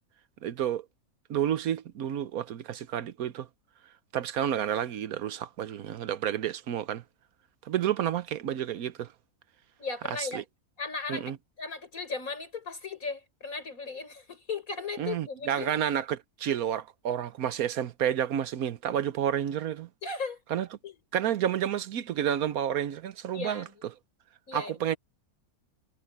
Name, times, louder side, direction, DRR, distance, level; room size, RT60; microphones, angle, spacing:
voice 1, 0.4-0.8 1.3-3.5 4.1-7.0 7.7-9.1 10.2-10.4 11.1-11.4 15.0-19.9 20.5-20.7 21.1-23.6 24.5-25.0, right 10 dB, 80° right, 1.3 m, -30 dB
voice 2, 9.8-10.4 10.8-15.8 20.0-20.4 20.8-21.0 23.3-23.7 24.5-24.8, left 4 dB, 70° left, 5.4 m, -37 dB
omnidirectional pair, 1.5 m